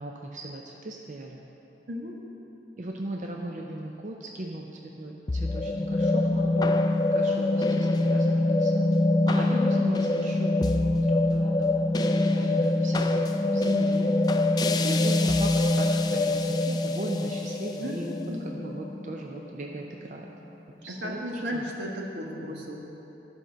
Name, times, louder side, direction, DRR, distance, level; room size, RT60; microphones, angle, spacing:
voice 1, 0.0-1.4 2.8-6.8 7.1-8.9 9.3-11.7 12.0-14.2 14.8-18.1 18.4-20.3 20.8-21.6, right 1 dB, 45° right, 0 dB, 0.6 m, -38 dB
voice 2, 1.9-2.2 9.5-10.0 17.8-18.5 20.9-22.8, equal, 85° right, -2 dB, 1.5 m, -34 dB
sound 1, 5.3-19.7, left 2 dB, 20° left, 0.3 m, -24 dB
12.5 x 5.4 x 6.3 m, 3.0 s
head